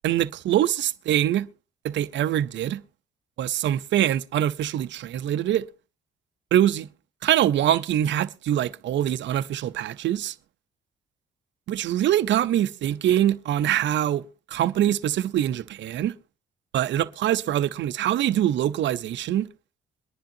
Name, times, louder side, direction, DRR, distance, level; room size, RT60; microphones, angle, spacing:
voice 1, 0.0-1.5 1.8-2.8 3.4-5.7 6.5-6.9 7.2-10.3 11.7-14.2 14.5-16.1 16.7-19.5, right 11 dB, 65° right, 0.6 m, -24 dB
22.5 x 10.5 x 2.7 m
cardioid pair, 90°, 20 cm